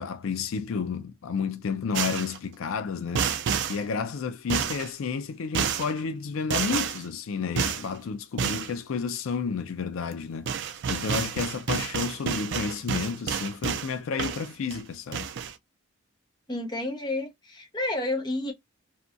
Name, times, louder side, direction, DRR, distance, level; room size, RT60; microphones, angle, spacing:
voice 1, 0.0-3.4 3.7-10.5 10.9-15.3, left 5 dB, 75° left, 0.4 m, -31 dB
sound 1, 1.9-2.4 3.1-3.8 4.5-4.9 5.5-5.9 6.5-7.0 7.6-7.9 8.4-8.7 10.1-10.2 10.5-13.9 14.2-14.8 15.1-15.5, right 7 dB, 60° right, 0.4 m, -29 dB
voice 2, 16.5-18.5, left 2 dB, 20° left, 0.7 m, -30 dB
2.7 x 2.2 x 2.5 m
head